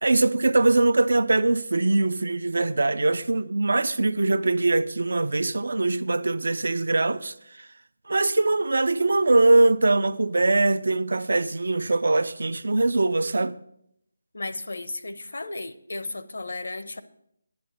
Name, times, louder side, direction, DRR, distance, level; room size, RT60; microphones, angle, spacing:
voice 1, 0.0-7.7 8.1-13.6, right 2 dB, 70° right, 0.5 m, -22 dB
voice 2, 14.3-17.0, left 2 dB, 75° left, 0.7 m, -34 dB
10.0 x 9.5 x 4.3 m
figure-of-eight pair, 175°, 0 cm